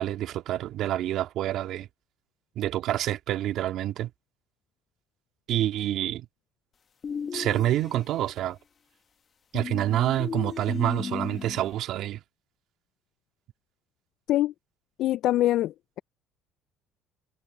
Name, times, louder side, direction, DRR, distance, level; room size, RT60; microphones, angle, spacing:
voice 1, 0.0-1.9 2.6-4.1 5.5-6.3 7.3-8.6 9.5-12.2, right 13 dB, 65° right, 2.0 m, -27 dB
sound 1, 7.0-8.3 9.5-11.7, left 6 dB, 40° left, 1.7 m, -35 dB
voice 2, 15.0-16.0, left 14 dB, 65° left, 0.4 m, -24 dB
supercardioid pair, 80°, 0 cm